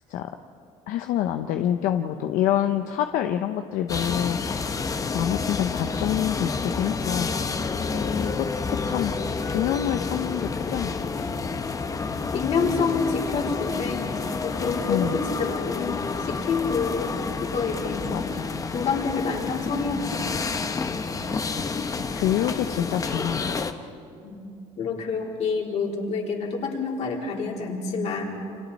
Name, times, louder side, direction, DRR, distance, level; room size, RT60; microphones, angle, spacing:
voice 1, 0.9-7.3 7.7-9.1 9.4-11.3 14.9-15.2 18.1-18.2 21.3-21.7 22.1-23.5 23.8-23.9, left 11 dB, 75° left, 6 dB, 0.9 m, -27 dB
sound 1, 3.9-23.7, left 4 dB, 25° left, 1.0 m, -29 dB
voice 2, 12.3-18.2 18.7-20.2 24.2-24.4 24.8-28.2, left 5 dB, 55° left, -1 dB, 3.9 m, -28 dB
29.5 x 25.5 x 4.2 m, 2.5 s
cardioid pair, 130°, 14 cm